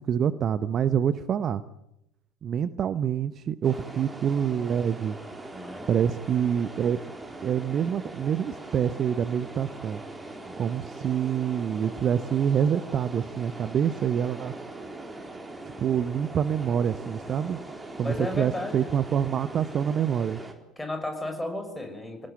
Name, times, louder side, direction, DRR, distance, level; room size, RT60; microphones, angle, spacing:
voice 1, 0.1-1.6 2.4-5.2 5.9-7.0 7.4-10.0 10.6-14.5 15.8-17.6 18.0-20.4, right 8 dB, 35° right, 15 dB, 0.9 m, -26 dB
sound 1, 3.6-20.5, right 2 dB, 10° right, 4.1 m, -41 dB
voice 2, 5.5-5.9 10.4-10.6 17.2-17.3 18.0-18.9 20.8-22.3, left 1 dB, 10° left, 6 dB, 6.3 m, -34 dB
27.5 x 19.0 x 9.3 m, 0.84 s
figure-of-eight pair, 70°, 0 cm